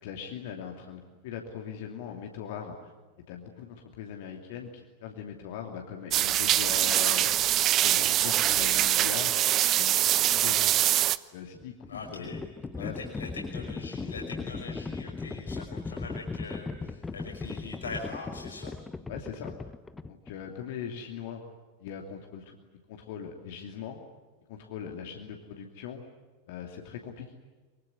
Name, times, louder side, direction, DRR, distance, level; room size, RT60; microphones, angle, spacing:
voice 1, 0.0-2.8 3.3-7.3 7.8-9.5 9.8-10.1 10.3-10.7 11.3-12.3 12.8-13.0 14.4-14.7 19.1-19.7 20.1-21.4 21.8-22.6 22.9-24.0 24.5-26.0 26.5-27.4, left 8 dB, 50° left, 2 dB, 2.7 m, -40 dB
sound 1, 6.1-11.2, right 13 dB, 35° right, 0.9 m, -24 dB
Livestock farm animals working animals, 11.4-20.5, left 3 dB, 10° left, 1.1 m, -38 dB
voice 2, 11.9-12.4 12.7-18.7, left 4 dB, 70° left, -1 dB, 5.6 m, -42 dB
25.0 x 24.0 x 9.8 m, 1.3 s
figure-of-eight pair, 90°, 0 cm